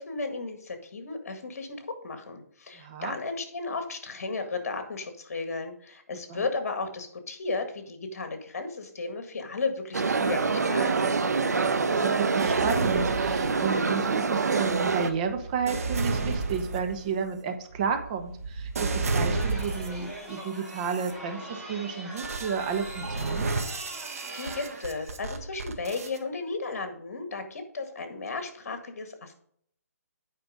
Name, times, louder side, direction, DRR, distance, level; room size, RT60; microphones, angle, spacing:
voice 1, 0.0-11.1 24.3-29.3, left 3 dB, 60° left, 7 dB, 1.9 m, -34 dB
voice 2, 2.8-3.2 6.3-6.4 11.5-23.5, right 6 dB, 25° right, 6 dB, 0.9 m, -32 dB
sound 1, 9.9-15.1, right 4 dB, 75° right, 1.1 m, -25 dB
sound 2, 12.4-14.0 14.6-20.1 20.7-21.1 22.2-26.2, right 3 dB, 60° right, 1.6 m, -32 dB
Chatter, 19.3-24.6, right 1 dB, 10° right, 2.1 m, -42 dB
9.0 x 5.2 x 5.0 m, 0.64 s
hypercardioid pair, 160°, 9 cm